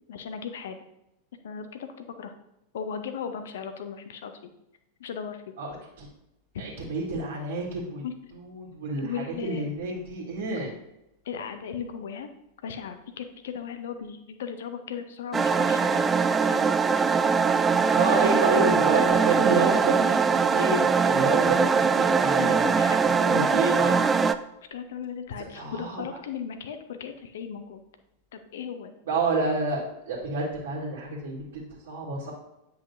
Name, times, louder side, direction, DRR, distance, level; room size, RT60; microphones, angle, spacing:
voice 1, 0.1-0.8 1.4-2.3 2.7-4.3 5.0-5.4 8.0-8.1 9.0-9.6 11.2-12.3 12.6-16.8 22.4-23.6 24.7-27.8 28.3-29.0, left 7 dB, 60° left, 8 dB, 0.8 m, -37 dB
voice 2, 5.6-6.1 6.6-8.0 8.3-10.7 17.9-20.2 20.5-22.8 23.2-23.9 25.5-26.0 29.1-32.3, right 3 dB, 55° right, -5 dB, 1.7 m, -29 dB
sound 1, 15.3-24.3, right 5 dB, 15° right, 0.3 m, -22 dB
9.1 x 5.7 x 2.7 m, 0.88 s
figure-of-eight pair, 90°, 0 cm